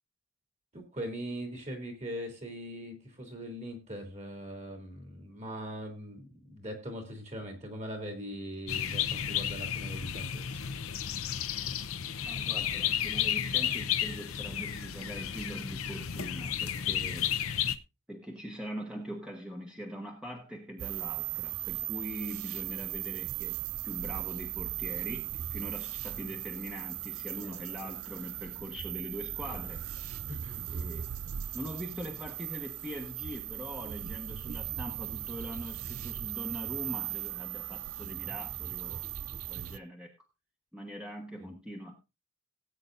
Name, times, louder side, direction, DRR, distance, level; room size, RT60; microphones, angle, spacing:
voice 1, 0.7-10.6 27.8-27.9 30.3-30.6 41.4-41.5, equal, 30° right, 4 dB, 3.0 m, -41 dB
sound 1, 8.7-17.8, left 9 dB, 70° left, 0.8 m, -32 dB
voice 2, 12.2-17.3 18.1-29.8 30.7-31.1 31.5-39.1 39.5-40.1 40.7-42.0, equal, 5° right, 1 dB, 1.2 m, -42 dB
sound 2, 20.8-39.8, right 12 dB, 75° right, 0.6 m, -38 dB
18.0 x 8.7 x 2.6 m, 0.25 s
head